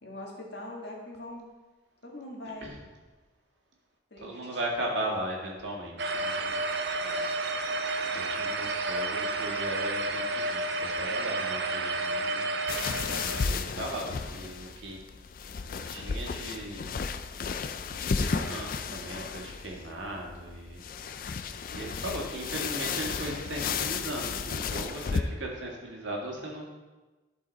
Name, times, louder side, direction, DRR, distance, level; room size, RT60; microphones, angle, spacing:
voice 1, 0.0-1.5 2.0-2.7 4.1-4.4 7.0-7.3 8.5-8.6, left 1 dB, 65° left, -1 dB, 1.7 m, -42 dB
voice 2, 4.2-6.7 8.1-12.4 13.4-15.0 15.9-17.0 17.9-20.8 21.3-26.6, right 1 dB, 85° right, -1 dB, 1.8 m, -37 dB
sound 1, 6.0-13.5, right 2 dB, 65° right, 0.6 m, -31 dB
sound 2, 12.7-25.2, left 5 dB, 45° left, 0.3 m, -33 dB
11.5 x 4.8 x 4.0 m, 1.2 s
head